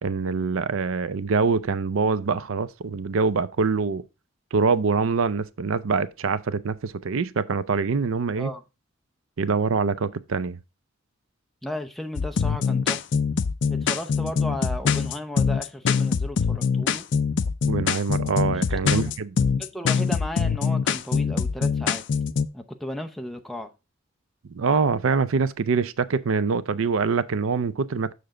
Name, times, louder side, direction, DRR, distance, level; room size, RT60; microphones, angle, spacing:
voice 1, 0.0-4.0 4.5-8.5 9.4-10.6 17.7-19.3 24.5-28.1, right 5 dB, 75° right, 0.5 m, -24 dB
voice 2, 11.6-13.0 13.7-17.0 18.7-19.1 19.6-22.0 22.5-23.7, left 1 dB, ahead, 0.6 m, -35 dB
sound 1, 12.2-22.5, left 6 dB, 60° left, 0.4 m, -23 dB
6.8 x 6.5 x 3.7 m
head